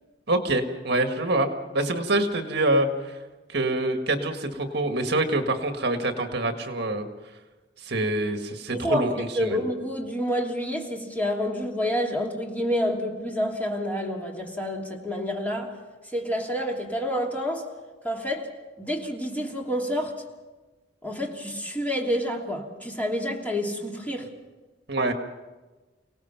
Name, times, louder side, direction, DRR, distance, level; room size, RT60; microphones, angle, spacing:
voice 1, 0.3-1.5 1.7-3.1 3.5-7.1 7.8-9.6 24.9-25.1, right 2 dB, 60° right, 5 dB, 1.7 m, -25 dB
voice 2, 8.7-9.1 9.3-15.7 16.1-17.7 18.0-18.5 18.8-20.2 21.0-24.3, equal, 10° left, -1 dB, 3.0 m, -28 dB
30.0 x 18.0 x 5.9 m, 1.2 s
head